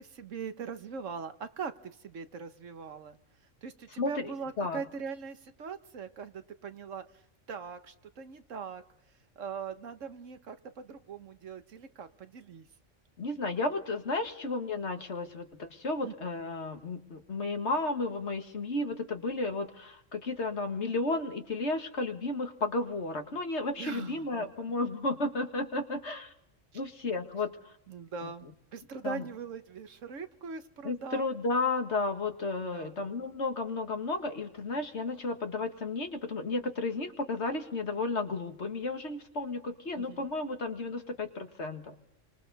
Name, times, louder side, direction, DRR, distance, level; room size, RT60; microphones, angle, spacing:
voice 1, 0.0-3.2 3.6-7.2 7.5-8.8 9.4-12.7 16.0-16.1 23.8-24.5 24.8-24.9 26.7-26.8 27.9-31.3 32.7-33.0 39.9-40.3, right 5 dB, 85° right, 9 dB, 1.5 m, -41 dB
voice 2, 4.0-4.3 4.6-4.8 13.2-26.3 26.7-27.5 29.0-29.2 30.8-41.9, left 3 dB, 65° left, 5 dB, 2.0 m, -33 dB
29.0 x 25.0 x 4.1 m, 0.77 s
omnidirectional pair, 1.3 m